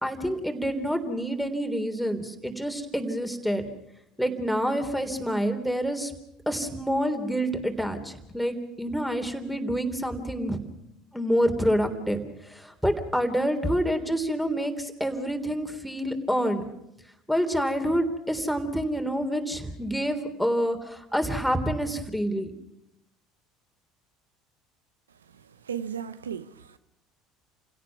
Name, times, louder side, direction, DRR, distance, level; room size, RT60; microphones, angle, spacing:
voice 1, 0.0-3.6 4.2-6.1 6.5-10.6 11.1-12.2 12.5-16.6 17.3-22.5, equal, ahead, 3.5 m, -27 dB
voice 2, 25.6-26.8, right 8 dB, 85° right, 0.7 m, -35 dB
29.0 x 17.0 x 6.0 m
hypercardioid pair, 65°, 0 cm